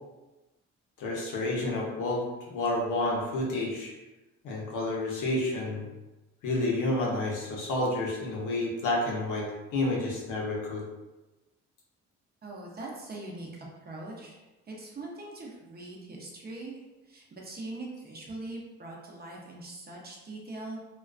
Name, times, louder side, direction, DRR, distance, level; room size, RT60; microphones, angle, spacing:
voice 1, 1.0-3.9 4.4-5.9 6.4-9.5 9.7-10.8, left 2 dB, 90° left, -3 dB, 0.7 m, -30 dB
voice 2, 12.4-13.5 13.8-16.8 17.0-20.8, right 2 dB, 30° right, -2 dB, 0.6 m, -42 dB
2.3 x 2.3 x 2.3 m, 1.1 s
cardioid pair, 90°, 30 cm